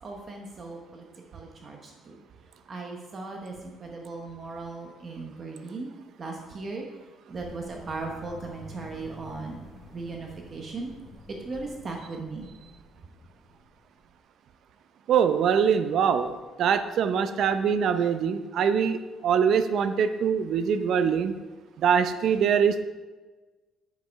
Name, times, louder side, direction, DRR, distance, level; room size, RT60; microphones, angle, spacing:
voice 1, 0.0-1.1 1.3-2.1 2.7-5.9 6.2-6.8 7.3-9.6 9.9-10.9 11.3-12.5, right 3 dB, 30° right, 1 dB, 1.1 m, -37 dB
sound 1, 7.3-14.1, left 1 dB, 10° left, 3.3 m, -49 dB
voice 2, 15.1-21.4 21.8-22.8, right 7 dB, 55° right, 10 dB, 0.6 m, -23 dB
8.3 x 7.7 x 4.6 m, 1.3 s
cardioid pair, 160°, 0 cm